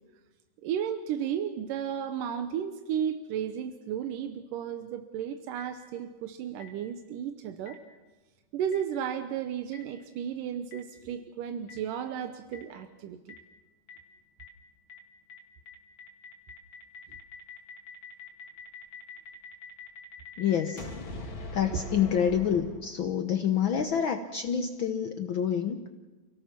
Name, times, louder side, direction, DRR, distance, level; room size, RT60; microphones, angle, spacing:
voice 1, 0.6-7.8 8.5-13.4, right 9 dB, 90° right, 8 dB, 2.5 m, -34 dB
Boom, 5.6-5.7 6.6-6.7 7.7-7.8 8.7-8.8 9.7-9.8 10.7-10.8 11.7-11.8 12.5-12.6 13.3-13.4 13.9-14.0 14.4-14.5 14.9-15.0 15.3-15.4 15.7-23.2, left 4 dB, 40° left, 2.8 m, -43 dB
voice 2, 20.4-20.9 21.5-25.8, left 8 dB, 90° left, 6 dB, 1.0 m, -27 dB
29.5 x 17.5 x 6.0 m, 1.2 s
omnidirectional pair, 3.7 m